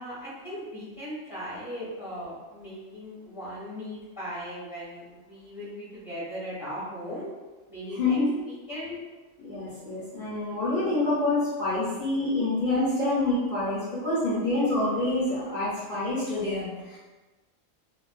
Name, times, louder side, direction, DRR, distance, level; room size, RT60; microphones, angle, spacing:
voice 1, 0.0-7.3 7.7-8.2 8.4-9.0, equal, ahead, -9 dB, 1.2 m, -38 dB
voice 2, 8.0-8.4 9.4-17.0, left 2 dB, 40° left, -13 dB, 1.0 m, -27 dB
2.7 x 2.4 x 2.4 m, 1.2 s
omnidirectional pair, 1.4 m